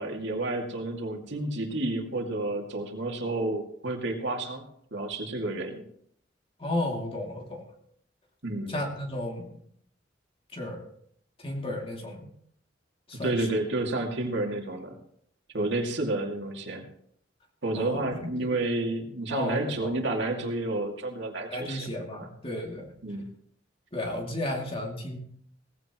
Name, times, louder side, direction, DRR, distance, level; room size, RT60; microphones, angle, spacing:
voice 1, 0.0-4.6 4.9-5.9 8.4-8.7 13.2-14.9 15.5-16.8 17.6-21.9 23.0-23.3, right 2 dB, 65° right, 2 dB, 2.4 m, -30 dB
voice 2, 6.6-7.7 8.7-9.6 10.5-10.8 11.4-12.3 13.1-13.5 17.7-18.0 18.4-18.5 19.3-19.9 21.5-22.9 23.9-25.2, left 1 dB, 30° left, 1 dB, 2.7 m, -33 dB
18.0 x 15.5 x 3.1 m, 0.66 s
head